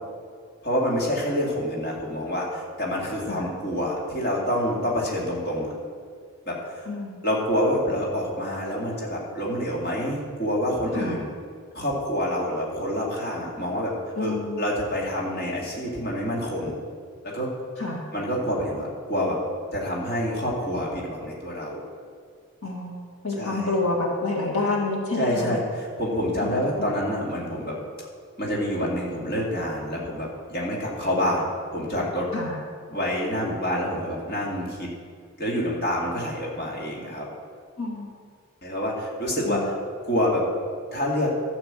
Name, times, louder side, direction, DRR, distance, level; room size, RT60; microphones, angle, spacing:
voice 1, 0.6-5.7 6.5-6.8 7.2-11.3 11.7-16.8 17.2-17.5 18.1-19.4 19.7-21.8 23.4-23.7 25.2-27.8 28.4-31.5 31.7-32.3 32.9-34.9 35.4-37.3 38.6-39.7 40.0-40.4 40.9-41.3, equal, 45° left, -4 dB, 2.3 m, -27 dB
voice 2, 14.2-14.6 17.8-18.0 22.6-25.6 26.4-26.9 32.3-32.6 37.8-38.1 39.5-39.6, left 2 dB, 80° left, -2 dB, 2.1 m, -28 dB
12.5 x 5.9 x 7.5 m, 2.1 s
head